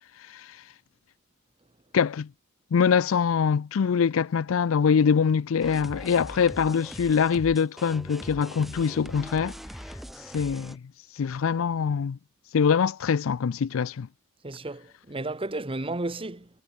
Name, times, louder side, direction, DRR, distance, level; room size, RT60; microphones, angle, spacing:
voice 1, 1.9-2.3 2.7-9.6 10.3-10.8 11.2-12.2 12.5-14.1, left 6 dB, 75° left, 0.4 m, -24 dB
sound 1, 5.6-10.8, equal, ahead, 0.8 m, -41 dB
voice 2, 14.4-16.5, right 2 dB, 25° right, 1.4 m, -33 dB
head